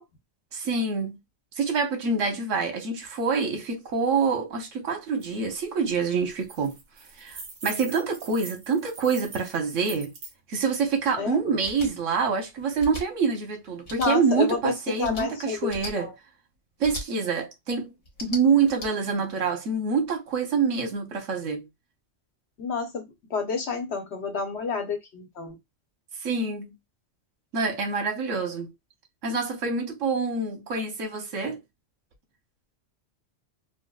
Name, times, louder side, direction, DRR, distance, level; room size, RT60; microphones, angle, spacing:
voice 1, 0.5-1.2 1.6-6.8 7.2-10.1 10.5-16.1 16.8-17.9 18.2-21.7 26.2-26.8 27.5-28.7 29.2-31.6, right 5 dB, 85° right, 1.2 m, -26 dB
sound 1, 5.2-5.3 5.6-5.8 6.2-10.3, right 4 dB, 65° right, 1.3 m, -43 dB
sound 2, 11.6-11.9 12.8-13.0 13.8-14.1 15.0-15.2 15.7-15.9 16.8-17.0 18.0-18.9, left 1 dB, 80° left, 1.5 m, -37 dB
voice 2, 13.9-16.1 22.6-23.0 23.3-25.6, left 5 dB, 65° left, 1.1 m, -29 dB
4.0 x 2.1 x 2.3 m
omnidirectional pair, 1.3 m